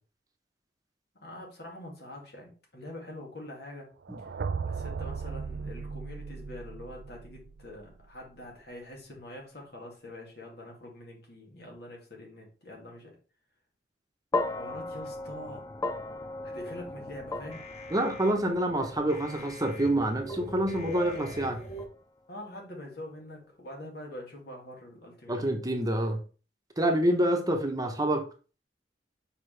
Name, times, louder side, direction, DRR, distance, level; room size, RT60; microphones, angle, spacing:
voice 1, 1.2-3.9 4.6-13.1 14.5-15.6 16.4-17.6 22.3-25.5, left 1 dB, 65° left, 0 dB, 2.4 m, -44 dB
sound 1, 4.0-8.0, right 5 dB, 75° right, 0.4 m, -37 dB
sound 2, 14.3-22.7, left 2 dB, 20° left, 0.4 m, -38 dB
sound 3, 16.9-21.9, equal, 40° left, 1.1 m, -44 dB
voice 2, 17.9-21.6 25.3-26.2 26.8-28.2, right 1 dB, 20° right, 3 dB, 1.0 m, -27 dB
6.7 x 4.9 x 3.4 m, 0.36 s
head